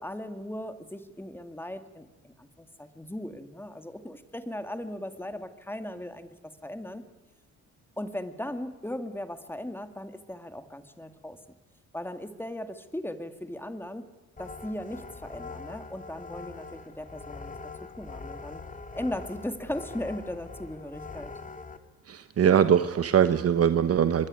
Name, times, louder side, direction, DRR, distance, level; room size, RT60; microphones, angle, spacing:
voice 1, 0.0-7.0 8.0-11.4 11.9-14.0 14.4-18.6 18.9-21.3, left 1 dB, 5° left, 9 dB, 2.2 m, -38 dB
sound 1, 14.4-21.8, left 4 dB, 25° left, 2.3 m, -43 dB
voice 2, 22.1-24.3, right 8 dB, 50° right, 11 dB, 1.2 m, -22 dB
25.0 x 21.5 x 9.7 m, 1.1 s
cardioid pair, 90°, 30 cm